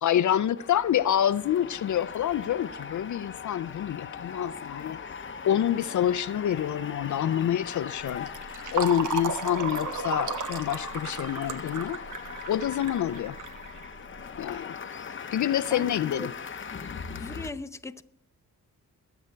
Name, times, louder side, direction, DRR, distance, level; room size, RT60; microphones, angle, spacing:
voice 1, 0.0-5.0 5.4-8.3 8.7-12.0 12.5-13.4 14.4-14.7 15.3-16.3, left 10 dB, 60° left, 0.5 m, -27 dB
sound 1, 0.6-17.5, left 6 dB, 35° left, 0.8 m, -40 dB
Fill (with liquid), 8.0-14.4, right 5 dB, 65° right, 1.3 m, -35 dB
voice 2, 15.7-16.3 17.2-18.0, left 2 dB, 10° left, 0.6 m, -38 dB
22.0 x 8.0 x 4.5 m
cardioid pair, 105°, 33 cm